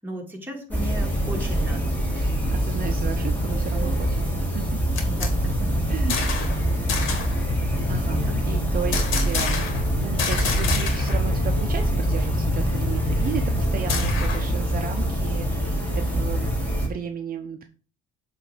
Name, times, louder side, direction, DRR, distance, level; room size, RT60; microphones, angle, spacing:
voice 1, 0.0-2.4 5.0-6.5 8.1-8.3, equal, 10° right, 0 dB, 2.1 m, -37 dB
sound 1, 0.7-16.9, equal, 10° left, 2.7 m, -24 dB
voice 2, 2.1-4.8 5.9-6.2 7.9-9.7 10.0-17.6, right 8 dB, 45° right, 5 dB, 0.7 m, -34 dB
sound 2, 4.6-6.6 6.9-7.4 8.9-9.9 10.2-11.3 11.5-11.6 12.0-14.6, left 4 dB, 70° left, 1.9 m, -29 dB
7.5 x 3.3 x 5.0 m, 0.38 s
cardioid pair, 105°, 21 cm